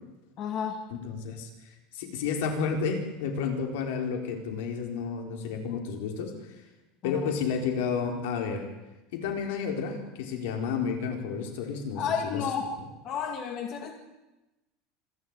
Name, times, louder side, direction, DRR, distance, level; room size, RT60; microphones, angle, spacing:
voice 1, 0.4-0.8 7.0-7.4 11.9-12.7 13.0-13.9, left 7 dB, 35° left, 4 dB, 2.1 m, -32 dB
voice 2, 1.0-1.5 1.9-6.3 7.0-8.7 9.1-12.4, left 6 dB, 80° left, 3 dB, 4.3 m, -31 dB
26.0 x 12.0 x 8.9 m, 1.0 s
cardioid pair, 175°, 0 cm